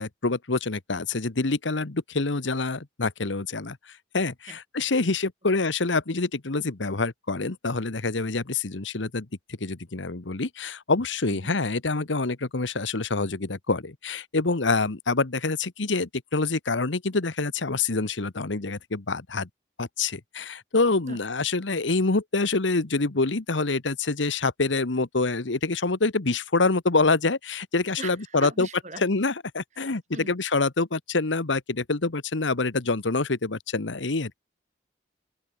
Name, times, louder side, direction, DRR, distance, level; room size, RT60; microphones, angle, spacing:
voice 1, 0.0-3.8 4.1-9.3 9.6-19.5 19.8-28.7 29.0-34.4, left 3 dB, 90° left, 1.3 m, -26 dB
voice 2, 11.3-11.6 21.1-21.2 28.0-29.0 29.8-30.4, right 3 dB, 40° right, 4.2 m, -40 dB
head